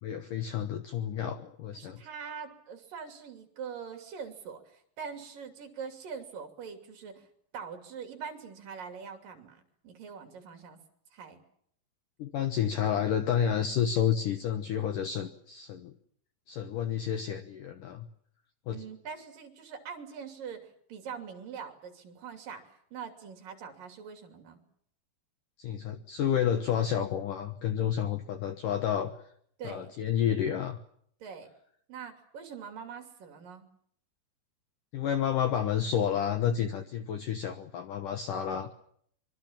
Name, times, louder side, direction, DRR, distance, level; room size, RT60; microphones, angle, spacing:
voice 1, 0.0-2.0 12.2-15.9 16.5-18.1 18.7-18.8 25.6-29.1 29.6-30.8 34.9-38.7, left 9 dB, 70° left, 8 dB, 2.1 m, -30 dB
voice 2, 1.7-7.3 7.5-10.8 11.1-11.4 18.7-24.6 29.6-29.9 31.2-31.5 31.9-33.7, right 6 dB, 50° right, 5 dB, 4.1 m, -43 dB
25.0 x 24.0 x 7.3 m, 0.67 s
omnidirectional pair, 5.3 m